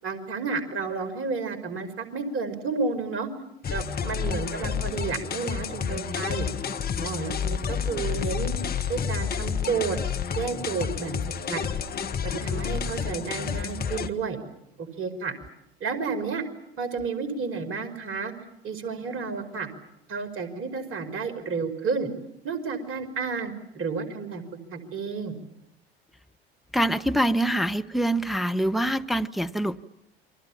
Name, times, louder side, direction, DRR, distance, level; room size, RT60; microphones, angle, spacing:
voice 1, 0.0-3.3 3.7-6.5 7.0-8.5 8.9-10.0 10.4-11.1 11.5-11.6 12.2-14.4 14.8-15.3 15.8-16.4 16.8-18.3 18.6-19.7 20.1-22.1 22.4-24.4 24.7-25.4, right 5 dB, 40° right, 10 dB, 5.2 m, -31 dB
sound 1, 3.6-14.1, left 7 dB, 30° left, 1.8 m, -30 dB
voice 2, 26.7-29.9, right 1 dB, ahead, 9 dB, 1.0 m, -25 dB
29.5 x 24.0 x 7.3 m, 0.81 s
hypercardioid pair, 75°, 31 cm